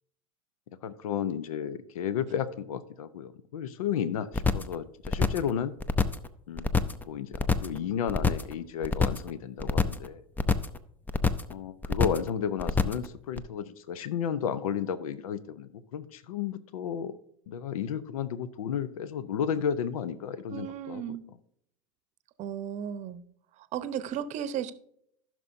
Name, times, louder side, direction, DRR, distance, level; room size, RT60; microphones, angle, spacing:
voice 1, 0.8-5.7 6.5-10.2 11.5-17.1 17.5-21.2, left 8 dB, 80° left, 15 dB, 0.7 m, -33 dB
sound 1, 4.3-4.7 5.0-5.5 5.8-6.3 6.6-7.0 7.3-7.8 8.1-8.5 8.8-9.3 9.6-10.1 10.4-10.8 11.1-11.5 11.8-12.3 12.6-13.1 13.4-13.5, left 4 dB, 10° left, 0.5 m, -25 dB
voice 2, 20.5-21.2 22.4-23.2 23.7-24.7, right 9 dB, 40° right, 13 dB, 0.8 m, -34 dB
15.0 x 6.1 x 2.6 m, 0.71 s
hypercardioid pair, 100°, 18 cm